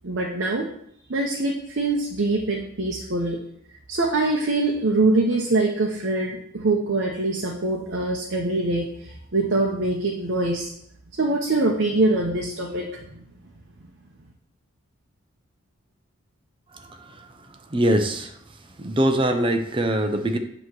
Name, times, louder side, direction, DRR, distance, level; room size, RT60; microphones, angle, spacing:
voice 1, 0.0-0.7 1.1-3.4 3.9-10.7 11.2-13.2, right 2 dB, 55° right, 0 dB, 0.8 m, -24 dB
voice 2, 16.7-17.2 17.7-18.3 18.8-20.4, right 1 dB, 25° right, 5 dB, 0.6 m, -23 dB
8.0 x 3.0 x 6.1 m, 0.71 s
head